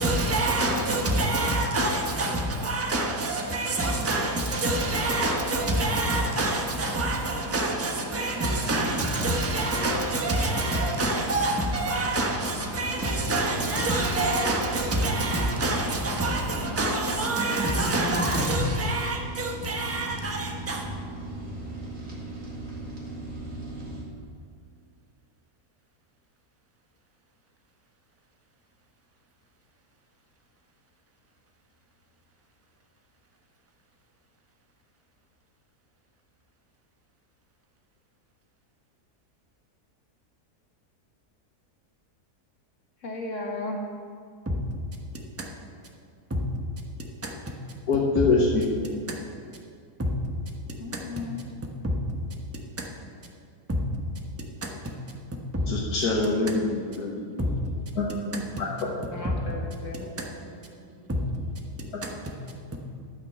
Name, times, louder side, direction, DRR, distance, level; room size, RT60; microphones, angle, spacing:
voice 1, 0.0-20.8 48.1-48.2 50.0-50.1 53.7-53.8 55.5-55.6 57.4-57.5 62.0-62.1, right 1 dB, 10° right, 1.0 m, -26 dB
sound 1, 8.2-24.0, right 1 dB, 45° right, 2.5 m, -39 dB
voice 2, 43.0-43.8 50.8-51.4 59.1-60.3, left 2 dB, 55° left, 1.7 m, -35 dB
voice 3, 47.9-48.6 55.7-57.3 57.9-58.9 61.9-62.0, left 3 dB, 75° left, 1.7 m, -25 dB
12.5 x 6.0 x 6.8 m
omnidirectional pair, 1.6 m